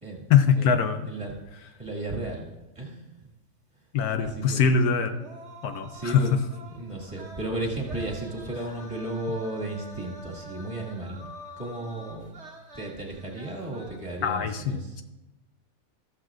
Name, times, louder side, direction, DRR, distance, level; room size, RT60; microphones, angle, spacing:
voice 1, 0.3-1.1 3.9-5.2 5.6-6.4 14.2-14.8, left 6 dB, 75° left, 8 dB, 1.2 m, -23 dB
voice 2, 1.8-2.4 2.8-3.1 4.2-4.6 5.8-6.3 6.7-11.3 11.6-12.3 12.7-15.0, right 2 dB, 20° right, -2 dB, 2.1 m, -34 dB
sound 1, 4.4-14.0, right 1 dB, 50° right, 1.4 m, -46 dB
14.0 x 13.5 x 2.5 m, 1.0 s
omnidirectional pair, 1.6 m